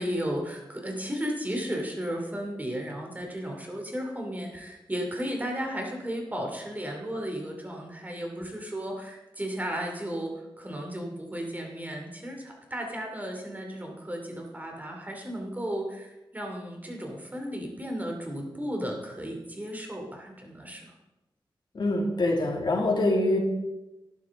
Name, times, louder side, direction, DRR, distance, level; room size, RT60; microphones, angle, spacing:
voice 1, 0.0-20.9, equal, 20° right, 1 dB, 2.6 m, -34 dB
voice 2, 21.7-23.4, left 2 dB, 60° left, 0 dB, 2.4 m, -24 dB
12.0 x 11.0 x 3.8 m, 1.0 s
wide cardioid pair, 85°, 9 cm